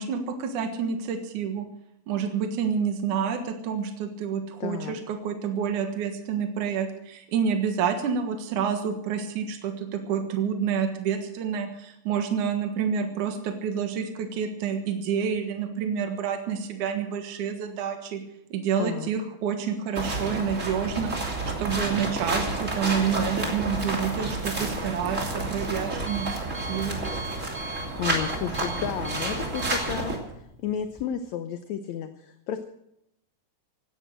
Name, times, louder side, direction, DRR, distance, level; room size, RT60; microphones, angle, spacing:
voice 1, 0.0-1.7 2.1-18.2 18.5-27.0, right 7 dB, 70° right, 5 dB, 2.9 m, -28 dB
voice 2, 4.6-4.9 18.8-19.1 28.0-32.6, left 9 dB, 70° left, 9 dB, 2.0 m, -32 dB
sound 1, 19.9-30.2, right 2 dB, 25° right, 3.0 m, -30 dB
Alarm, 24.7-31.0, right 3 dB, 5° right, 1.8 m, -41 dB
17.5 x 12.5 x 6.4 m, 0.78 s
omnidirectional pair, 3.7 m